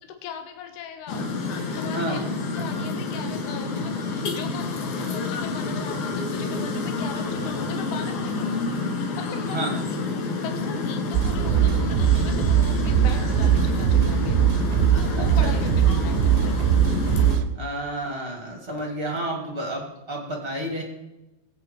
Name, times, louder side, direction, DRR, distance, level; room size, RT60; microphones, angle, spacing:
voice 1, 0.0-1.3 1.8-2.3 2.5-8.9 9.2-14.4 15.0-16.6, left 7 dB, 75° left, 6 dB, 3.4 m, -39 dB
sound 1, 1.1-17.4, left 3 dB, 55° left, 2.5 m, -28 dB
sound 2, 11.1-17.5, right 10 dB, 90° right, 3.1 m, -21 dB
voice 2, 15.2-15.5 17.5-20.8, right 1 dB, 25° right, 0 dB, 1.4 m, -30 dB
22.0 x 8.4 x 4.5 m, 0.99 s
omnidirectional pair, 5.0 m